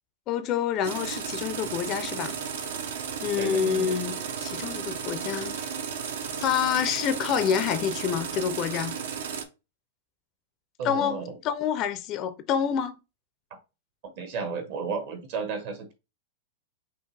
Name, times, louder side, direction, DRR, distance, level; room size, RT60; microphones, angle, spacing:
voice 1, 0.3-2.4 3.2-5.6 6.4-9.0 10.8-13.0, left 8 dB, 30° left, 0.4 m, -27 dB
sound 1, 0.8-9.4, right 7 dB, 70° right, 0.8 m, -34 dB
voice 2, 3.4-3.9 10.8-11.4 14.2-15.9, right 5 dB, 50° right, 1.2 m, -33 dB
5.6 x 2.5 x 3.3 m
supercardioid pair, 165°, 0 cm